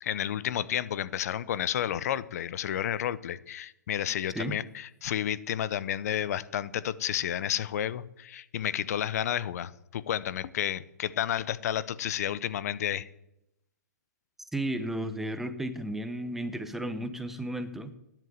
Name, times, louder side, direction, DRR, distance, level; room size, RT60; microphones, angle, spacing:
voice 1, 0.0-13.1, left 10 dB, 55° left, 18 dB, 0.8 m, -31 dB
voice 2, 14.5-17.9, right 1 dB, 5° right, 10 dB, 0.9 m, -33 dB
10.5 x 7.8 x 9.4 m, 0.83 s
hypercardioid pair, 140°, 10 cm